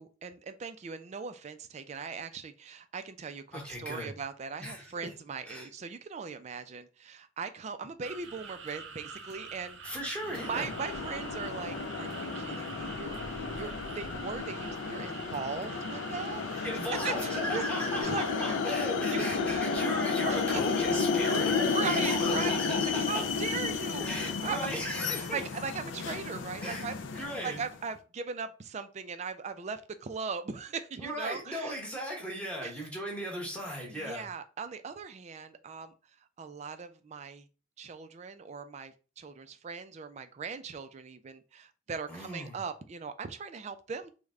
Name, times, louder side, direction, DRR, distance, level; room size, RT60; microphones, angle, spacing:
voice 1, 0.0-10.0 10.4-13.7 13.9-17.6 18.0-18.8 19.1-19.7 20.3-20.8 21.2-21.4 21.6-24.8 25.3-31.8 32.6-32.7 33.9-35.9 36.4-37.5 37.8-44.1, right 5 dB, 35° right, 10 dB, 0.3 m, -39 dB
voice 2, 3.5-4.1 4.6-5.1 5.5-5.7 9.8-10.7 16.6-23.3 24.0-25.4 26.6-27.6 31.0-34.2 42.1-42.6, equal, 5° left, -2 dB, 1.0 m, -37 dB
sound 1, 8.0-18.0, right 4 dB, 70° right, 0.7 m, -45 dB
sound 2, 10.3-27.7, left 5 dB, 70° left, 0.4 m, -32 dB
3.3 x 2.1 x 3.6 m, 0.34 s
head